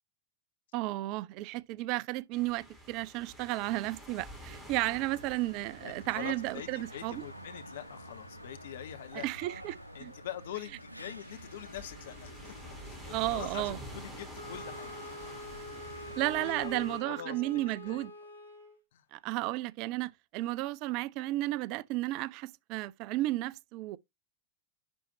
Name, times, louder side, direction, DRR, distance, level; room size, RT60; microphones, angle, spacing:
voice 1, 0.7-7.2 9.1-9.8 10.0-10.1 13.1-13.8 16.2-18.1 19.1-24.0, right 18 dB, 40° right, 0.4 m, -33 dB
sound 1, 2.3-17.0, equal, 5° right, 3.4 m, -50 dB
sound 2, 4.7-16.7, equal, 90° right, 0.7 m, -49 dB
voice 2, 5.8-9.5 9.9-14.9 15.9-18.1 18.9-19.0, left 11 dB, 60° left, 0.8 m, -45 dB
Wind instrument woodwind instrument, 14.3-18.8, left 1 dB, 85° left, 3.1 m, -45 dB
10.5 x 4.3 x 2.7 m
figure-of-eight pair, 90°, 0 cm